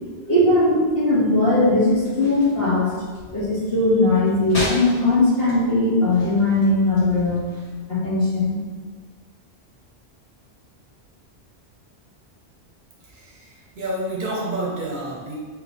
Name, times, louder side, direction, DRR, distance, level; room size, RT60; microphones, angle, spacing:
voice 1, 0.3-2.9 3.3-7.4 7.9-8.6, left 2 dB, 60° left, -7 dB, 1.4 m, -19 dB
sound 1, 1.9-7.7, left 1 dB, 85° left, 2.0 m, -35 dB
voice 2, 13.0-15.4, right 1 dB, 50° right, -4 dB, 0.9 m, -29 dB
3.7 x 2.9 x 4.2 m, 1.5 s
omnidirectional pair, 1.1 m